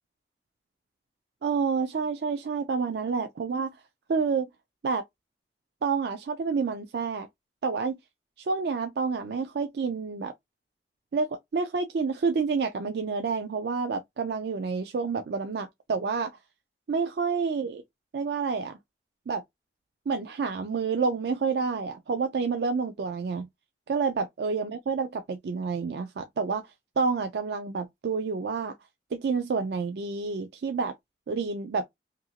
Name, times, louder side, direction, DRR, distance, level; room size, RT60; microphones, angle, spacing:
voice 1, 1.4-3.8 4.1-4.5 4.8-5.0 5.8-7.3 7.6-8.0 8.5-10.3 11.1-16.3 16.9-17.8 18.1-18.8 19.3-19.4 20.1-23.5 23.9-26.6 27.0-28.7 29.1-30.9 31.3-31.9, right 5 dB, 65° right, 0.4 m, -29 dB
2.8 x 2.5 x 2.7 m
head